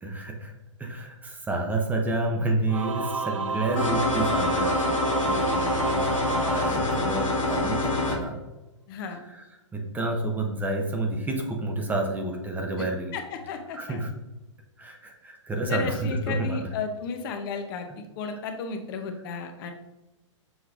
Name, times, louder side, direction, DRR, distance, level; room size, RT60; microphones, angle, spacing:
voice 1, 0.0-0.5 0.8-8.4 9.1-9.4 9.7-13.1 13.7-14.1 14.8-16.7, right 2 dB, 10° right, 2 dB, 0.6 m, -30 dB
Singing / Musical instrument, 2.7-7.5, right 4 dB, 80° right, 0.5 m, -31 dB
sound 1, 3.8-8.2, left 2 dB, 85° left, 1.5 m, -26 dB
voice 2, 8.9-9.2 12.8-12.9 13.1-14.0 15.7-19.7, left 5 dB, 45° left, 6 dB, 0.7 m, -34 dB
6.4 x 3.3 x 2.4 m, 1.0 s
hypercardioid pair, 120°, 16 cm